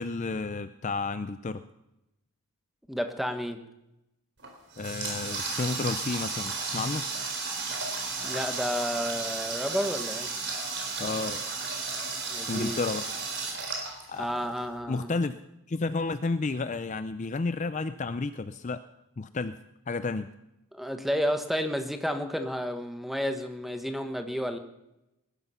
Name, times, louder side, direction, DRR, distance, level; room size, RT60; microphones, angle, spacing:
voice 1, 0.0-1.6 4.8-7.1 11.0-11.4 12.3-13.0 14.1-14.4 14.9-15.4 15.7-18.8 19.2-19.6 19.9-20.3, left 3 dB, 35° left, 12 dB, 0.4 m, -31 dB
voice 2, 2.9-3.6 8.2-10.3 12.3-12.8 14.1-15.1 20.7-24.6, equal, ahead, 7 dB, 1.2 m, -31 dB
Water tap faucet, 4.4-14.6, right 4 dB, 50° right, 4.3 m, -33 dB
19.5 x 12.5 x 5.6 m, 0.89 s
head